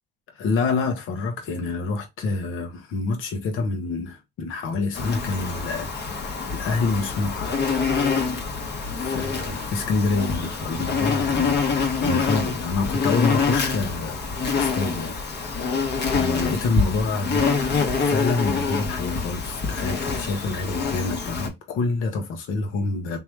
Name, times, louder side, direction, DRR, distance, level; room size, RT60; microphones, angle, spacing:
voice 1, 0.3-7.6 8.9-23.2, left 3 dB, 85° left, 1.1 m, -27 dB
Insect, 4.9-21.5, left 5 dB, 60° left, 1.2 m, -26 dB
3.6 x 3.0 x 3.1 m
cardioid pair, 90°, 20 cm